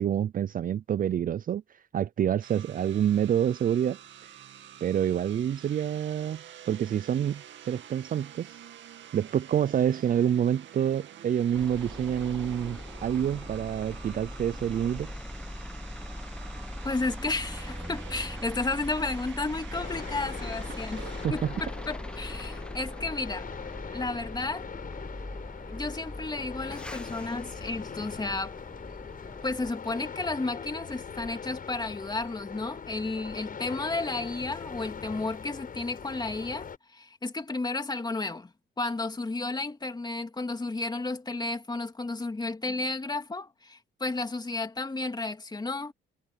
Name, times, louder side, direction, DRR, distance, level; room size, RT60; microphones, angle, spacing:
voice 1, 0.0-1.6 1.9-4.3 4.8-8.5 9.1-15.1 21.0-21.3, right 9 dB, 45° right, 0.5 m, -27 dB
sound 1, 2.4-21.3, right 10 dB, 70° right, 2.3 m, -48 dB
sound 2, 11.5-29.7, left 1 dB, 5° left, 1.0 m, -40 dB
voice 2, 16.8-23.5 23.9-24.7 25.7-28.5 29.4-45.9, left 3 dB, 20° left, 2.5 m, -33 dB
sound 3, 19.7-36.8, left 6 dB, 45° left, 6.5 m, -41 dB
cardioid pair, 90°, 20 cm